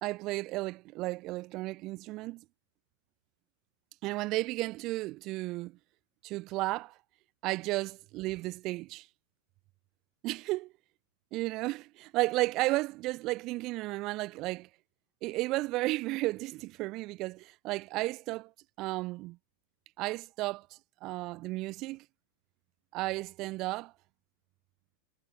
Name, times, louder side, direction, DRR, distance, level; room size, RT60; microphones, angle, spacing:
voice 1, 0.0-2.4 4.0-5.8 6.2-7.0 7.4-9.1 10.2-10.7 11.3-14.7 15.2-18.5 18.8-19.4 20.0-22.1 22.9-23.9, right 20 dB, 40° right, 0.3 m, -33 dB
figure-of-eight pair, 90°, 0 cm